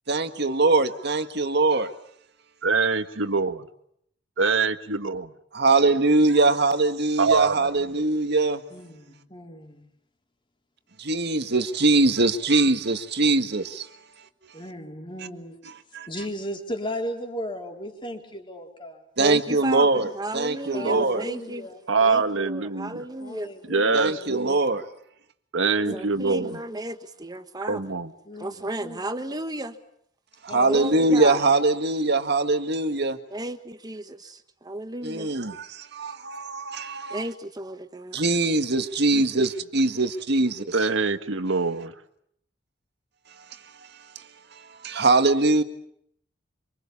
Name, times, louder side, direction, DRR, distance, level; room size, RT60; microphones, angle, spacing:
voice 1, 0.1-1.9 5.5-8.6 11.0-13.9 15.9-16.1 19.2-21.2 23.9-24.8 30.4-33.2 35.0-37.2 38.1-40.8 44.2-44.3 44.8-45.6, right 3 dB, 60° right, 1.8 m, -22 dB
voice 2, 2.6-3.7 4.4-5.3 7.2-7.7 20.8-21.1 21.9-23.0 23.7-24.6 25.5-26.6 27.7-28.1 39.1-39.2 40.7-41.9, right 4 dB, 75° right, 1.5 m, -24 dB
voice 3, 8.7-9.8 14.5-15.6 16.1-19.0 20.7-21.8 23.2-24.3 25.8-26.6 28.3-28.5 28.8-29.0 30.5-31.0, equal, 25° left, 4.2 m, -36 dB
voice 4, 19.2-21.7 22.0-23.5 25.6-28.0 28.4-29.8 30.7-31.4 33.3-35.3 36.1-36.2 37.1-38.2, right 1 dB, 20° right, 1.4 m, -34 dB
26.5 x 25.5 x 7.2 m
head